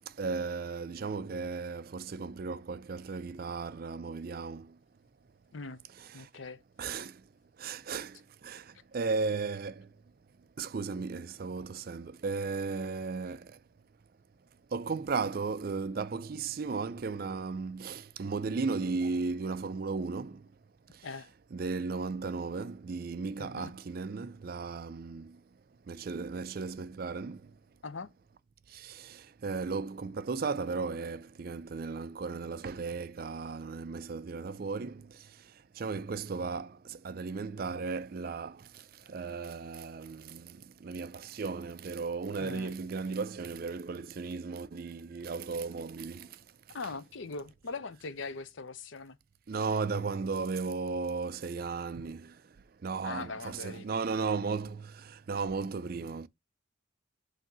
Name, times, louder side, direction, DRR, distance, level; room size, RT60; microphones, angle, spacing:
voice 1, 0.2-4.7 6.0-6.2 6.8-7.1 7.6-8.2 8.4-8.6 8.9-9.9 10.6-13.5 14.7-20.4 21.5-25.4 25.9-27.4 28.7-35.1 35.8-38.6 39.1-40.6 40.8-46.3 49.5-52.3 52.8-56.3, right 4 dB, 45° right, 0.4 m, -35 dB
voice 2, 6.1-6.6 21.0-21.3 23.4-23.7 27.8-28.1 42.4-42.7 46.7-49.2 53.0-53.9, left 4 dB, 70° left, 0.6 m, -41 dB
8.0 x 2.7 x 6.0 m
head